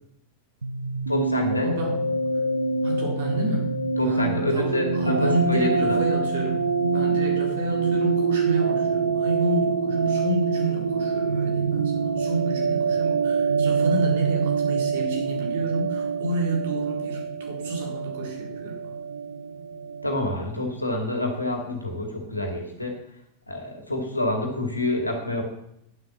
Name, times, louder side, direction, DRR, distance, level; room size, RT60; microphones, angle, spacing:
sound 1, 0.6-20.1, right 5 dB, 75° right, 0.9 m, -25 dB
voice 1, 1.1-1.7 4.0-6.0 20.0-23.0 23.5-25.4, left 1 dB, 85° left, 3 dB, 2.5 m, -27 dB
voice 2, 1.6-2.1 2.8-3.7 4.0-18.9, right 1 dB, 55° right, 1 dB, 4.0 m, -30 dB
10.5 x 7.7 x 7.3 m, 0.74 s
figure-of-eight pair, 90°, 0 cm